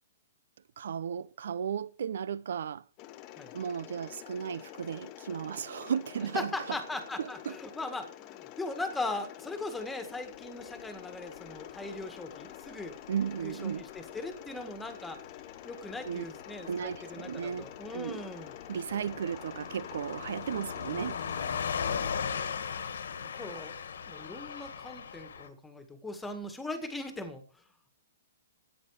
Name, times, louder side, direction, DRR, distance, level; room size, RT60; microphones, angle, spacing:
voice 1, 0.8-2.8 3.5-6.8 7.2-7.6 13.1-13.9 16.0-16.2 16.7-18.2 18.7-21.2, right 7 dB, 70° right, 0.7 m, -35 dB
Mechanisms, 3.0-21.5, left 14 dB, 30° left, 0.9 m, -48 dB
voice 2, 6.3-12.9 13.4-15.2 15.6-18.5 23.3-23.8 24.1-27.4, left 2 dB, 5° left, 1.8 m, -39 dB
Car passing by / Truck, 11.1-25.5, left 7 dB, 80° left, 1.8 m, -39 dB
13.0 x 9.9 x 4.9 m
hypercardioid pair, 160°, 0 cm